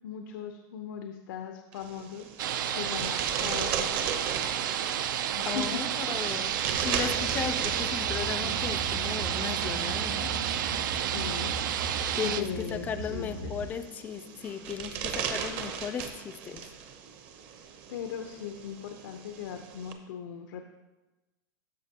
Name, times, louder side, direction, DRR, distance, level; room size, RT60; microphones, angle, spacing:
voice 1, 0.0-4.2 5.4-5.8 11.0-11.6 12.2-13.5 17.9-20.7, left 8 dB, 85° left, 5 dB, 0.7 m, -39 dB
sound 1, 1.7-19.9, right 7 dB, 45° right, 0.8 m, -38 dB
sound 2, 2.4-12.4, right 10 dB, 85° right, 0.5 m, -31 dB
voice 2, 5.4-10.3 12.2-16.6, left 7 dB, 15° left, 10 dB, 0.3 m, -36 dB
sound 3, 6.7-13.7, right 3 dB, 65° right, 2.2 m, -38 dB
13.0 x 5.3 x 2.8 m, 1.1 s
supercardioid pair, 160°, 10 cm